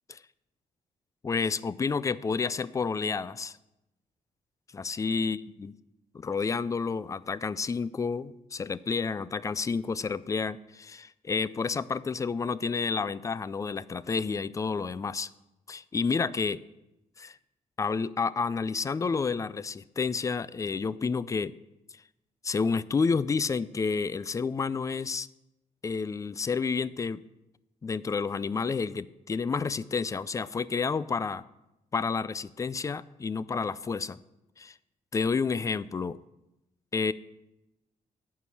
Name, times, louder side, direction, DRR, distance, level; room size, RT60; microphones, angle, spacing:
voice 1, 1.2-3.6 4.7-5.7 6.1-15.3 15.7-16.6 17.2-17.4 17.8-21.5 22.4-25.3 25.8-27.2 27.8-31.4 31.9-34.2 34.6-34.7 35.1-36.2 36.9-37.1, left 5 dB, 25° left, 18 dB, 0.3 m, -30 dB
11.5 x 4.7 x 8.3 m, 0.93 s
cardioid pair, 130°, 14 cm